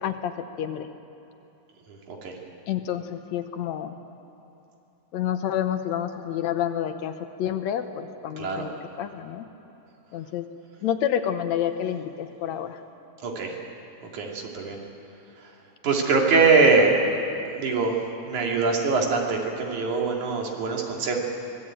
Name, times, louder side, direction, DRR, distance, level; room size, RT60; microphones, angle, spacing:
voice 1, 0.0-0.9 2.7-4.0 5.1-9.5 10.1-10.5 10.8-12.8, left 10 dB, 75° left, 8 dB, 2.2 m, -29 dB
voice 2, 1.9-2.3 8.4-8.7 13.2-13.6 14.1-14.8 15.4-15.5 15.8-17.0 17.5-18.0 18.2-21.2, right 4 dB, 90° right, 0 dB, 3.9 m, -23 dB
24.0 x 18.5 x 8.8 m, 3.0 s
omnidirectional pair, 3.3 m